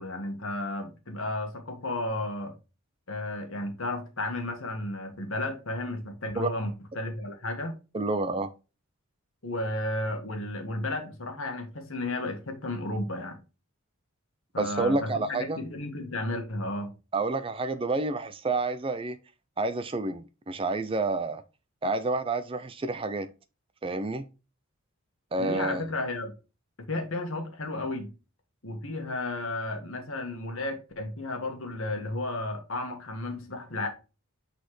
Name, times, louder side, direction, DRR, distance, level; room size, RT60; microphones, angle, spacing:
voice 1, 0.0-2.5 3.1-7.8 9.4-13.4 14.5-16.9 25.4-26.3 26.8-28.1 28.6-33.9, left 2 dB, 65° left, 1.5 m, -33 dB
voice 2, 7.9-8.5 14.6-15.6 17.1-19.2 19.6-21.4 21.8-23.3 23.8-24.3 25.3-25.9, right 3 dB, 25° right, 0.4 m, -29 dB
8.0 x 4.1 x 3.1 m
head